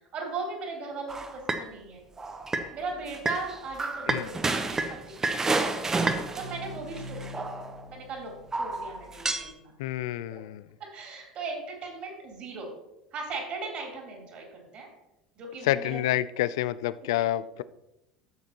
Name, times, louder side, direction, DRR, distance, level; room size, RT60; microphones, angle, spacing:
voice 1, 0.1-2.0 2.7-5.3 6.4-7.5 7.9-9.7 10.3-10.4 10.8-12.7 13.1-14.9 15.4-16.0 17.2-17.3, right 3 dB, 45° right, 0 dB, 3.6 m, -38 dB
sound 1, 1.1-1.7 2.2-2.7 3.1-7.8 8.5-9.5, right 3 dB, 20° right, 1.0 m, -30 dB
sound 2, 6.3-9.7, left 1 dB, 65° right, 1.0 m, -45 dB
voice 2, 9.8-10.7 15.6-17.6, left 14 dB, 70° left, 16 dB, 0.4 m, -28 dB
12.5 x 7.3 x 3.0 m, 0.89 s
hypercardioid pair, 70°, 3 cm